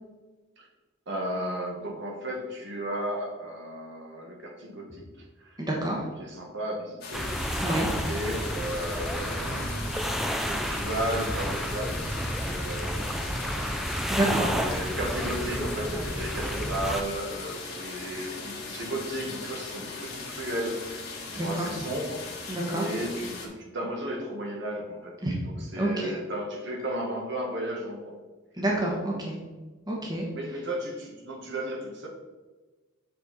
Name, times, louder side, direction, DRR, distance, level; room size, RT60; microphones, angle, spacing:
voice 1, 1.1-7.7 8.0-13.6 14.5-25.1 25.4-28.1 30.3-32.1, right 1 dB, 60° right, -1 dB, 1.5 m, -35 dB
voice 2, 5.6-6.0 7.6-7.9 14.1-14.5 21.3-21.5 22.5-22.8 25.2-25.3 25.8-26.1 28.6-29.4 29.9-30.2, right 1 dB, 20° right, -2 dB, 1.2 m, -28 dB
sound 1, 7.0-23.5, left 3 dB, 55° left, 1.5 m, -39 dB
sound 2, 7.1-17.0, equal, ahead, 0.4 m, -31 dB
7.4 x 4.5 x 4.1 m, 1.2 s
head